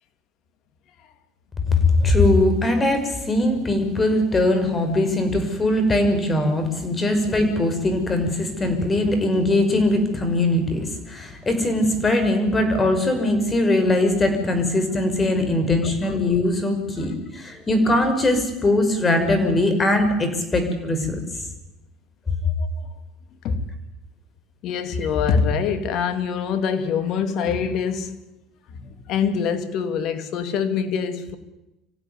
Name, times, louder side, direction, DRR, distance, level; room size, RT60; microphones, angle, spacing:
voice 1, 1.7-21.2, left 1 dB, 25° left, 8 dB, 5.8 m, -21 dB
voice 2, 15.8-16.1 22.4-22.9 23.4-23.6 24.6-28.2 28.7-31.4, left 6 dB, 60° left, 10 dB, 2.6 m, -25 dB
25.5 x 16.0 x 9.8 m, 0.97 s
hypercardioid pair, 80°, 0 cm